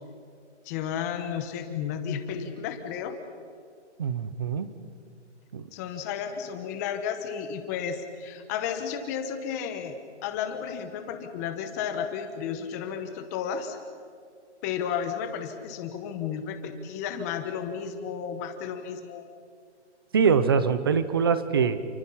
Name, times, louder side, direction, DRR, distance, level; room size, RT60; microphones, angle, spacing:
voice 1, 0.6-3.2 5.7-9.9 10.2-13.8 14.6-19.3, left 8 dB, 15° left, 7 dB, 1.2 m, -33 dB
voice 2, 4.0-4.7 5.5-5.6 20.1-21.8, right 6 dB, 20° right, 13 dB, 0.6 m, -23 dB
28.5 x 24.5 x 5.7 m, 2.2 s
hypercardioid pair, 165°, 35 cm